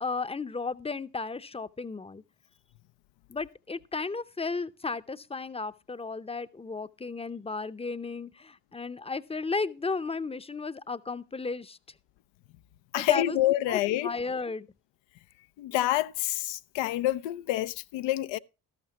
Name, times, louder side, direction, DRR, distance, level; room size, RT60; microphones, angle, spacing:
voice 1, 0.0-2.2 3.3-11.8 12.9-13.4 13.7-14.7, left 4 dB, 15° left, 0.6 m, -34 dB
voice 2, 12.9-14.1 15.6-18.4, left 15 dB, 80° left, 0.6 m, -27 dB
12.5 x 12.0 x 2.9 m
hypercardioid pair, 50°, 44 cm